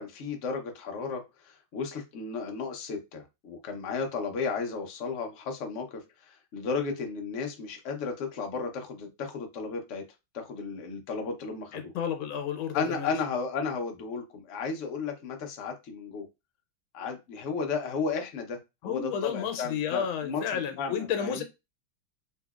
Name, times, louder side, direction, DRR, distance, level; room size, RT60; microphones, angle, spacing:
voice 1, 0.0-10.0 10.3-11.9 12.7-16.3 16.9-21.4, left 5 dB, 70° left, 0.7 m, -34 dB
voice 2, 11.7-13.1 18.8-21.4, left 8 dB, 85° left, 1.5 m, -31 dB
3.8 x 2.7 x 2.3 m
omnidirectional pair, 2.2 m